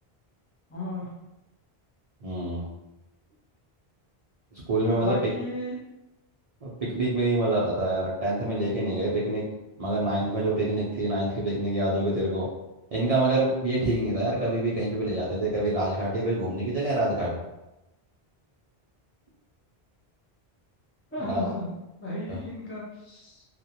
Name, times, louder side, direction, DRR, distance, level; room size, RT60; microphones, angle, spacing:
voice 1, 0.7-1.1 4.9-5.8 21.1-21.7 22.0-23.4, left 1 dB, 20° left, -5 dB, 0.3 m, -34 dB
voice 2, 2.2-2.6 4.5-5.2 6.6-9.5 9.8-12.5 12.9-17.3 21.3-21.4 22.3-22.4, right 1 dB, 55° right, -7 dB, 0.4 m, -26 dB
2.4 x 2.1 x 2.7 m, 0.98 s
omnidirectional pair, 1.1 m